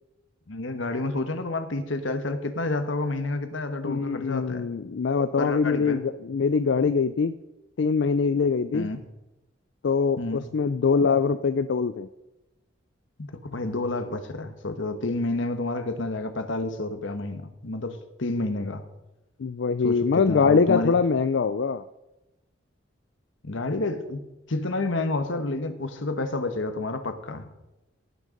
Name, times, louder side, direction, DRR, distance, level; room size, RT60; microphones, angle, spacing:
voice 1, 0.5-4.7 5.4-6.0 8.7-9.0 10.2-10.5 13.2-18.9 19.8-21.0 23.4-24.2 24.5-27.5, left 2 dB, 85° left, 9 dB, 1.3 m, -29 dB
voice 2, 3.8-7.3 7.8-8.9 9.8-12.1 19.4-21.8, left 5 dB, 70° left, 12 dB, 0.4 m, -23 dB
17.0 x 6.4 x 5.2 m, 0.96 s
head